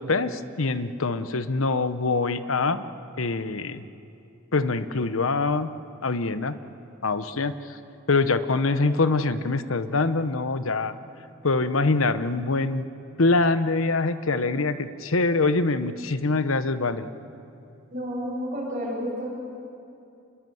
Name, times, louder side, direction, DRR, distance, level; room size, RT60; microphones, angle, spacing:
voice 1, 0.0-2.8 3.2-3.8 4.5-5.7 6.0-6.6 7.0-7.8 8.1-10.9 11.4-12.9 13.2-17.1, left 3 dB, 75° left, 12 dB, 1.0 m, -24 dB
voice 2, 17.9-19.3, equal, 40° right, -3 dB, 7.6 m, -30 dB
27.0 x 21.5 x 7.9 m, 2.7 s
head